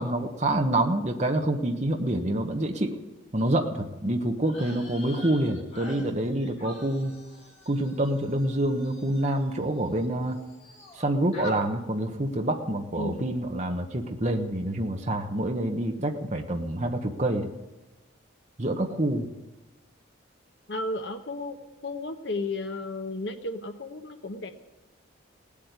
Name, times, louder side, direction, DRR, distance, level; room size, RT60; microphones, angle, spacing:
voice 1, 0.0-3.0 3.3-7.1 7.7-10.4 11.0-17.5 18.6-19.3, right 1 dB, 35° right, 3 dB, 1.1 m, -27 dB
sound 1, 4.4-10.1 10.3-11.0 11.3-11.6, left 1 dB, 35° left, 3.8 m, -45 dB
voice 2, 13.0-13.3 20.7-21.6 21.8-24.5, left 2 dB, 60° left, 7 dB, 1.1 m, -33 dB
18.0 x 8.6 x 9.5 m, 1.1 s
head